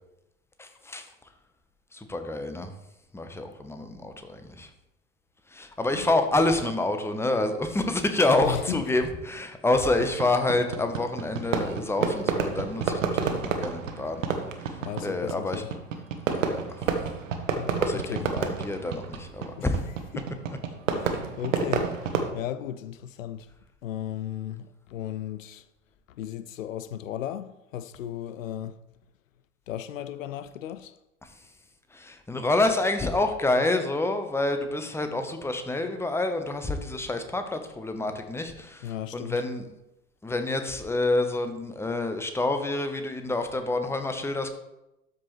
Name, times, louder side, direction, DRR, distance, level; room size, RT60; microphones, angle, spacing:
voice 1, 0.6-1.1 1.9-2.7 3.1-4.7 5.5-14.2 14.7-15.6 16.3-16.9 17.8-19.8 31.9-39.7 40.2-44.5, left 2 dB, 5° left, 0.9 m, -28 dB
voice 2, 8.4-8.8 14.8-15.7 16.8-17.0 17.5-18.3 19.6-19.7 20.1-20.3 20.9-23.5 23.8-25.6 26.2-28.8 29.7-30.9 38.8-39.4, left 11 dB, 75° left, 0.5 m, -35 dB
Fireworks, 10.0-22.3, right 6 dB, 75° right, 1.1 m, -30 dB
12.5 x 5.1 x 3.2 m
figure-of-eight pair, 75°, 39 cm